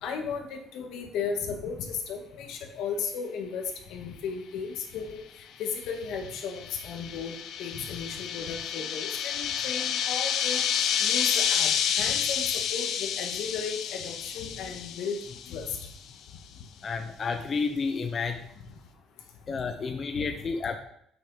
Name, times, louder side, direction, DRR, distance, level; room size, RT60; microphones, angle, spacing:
voice 1, 0.0-3.6 3.9-5.2 5.6-7.3 7.6-10.6 11.0-11.7 11.9-15.2 15.5-15.7 20.2-20.3, left 6 dB, 80° left, 3 dB, 2.0 m, -35 dB
sound 1, 5.9-15.7, left 8 dB, 65° left, 0.8 m, -29 dB
voice 2, 16.8-18.5 19.5-20.8, left 4 dB, 30° left, 6 dB, 0.7 m, -30 dB
8.9 x 6.6 x 5.1 m, 0.69 s
cardioid pair, 160°, 0 cm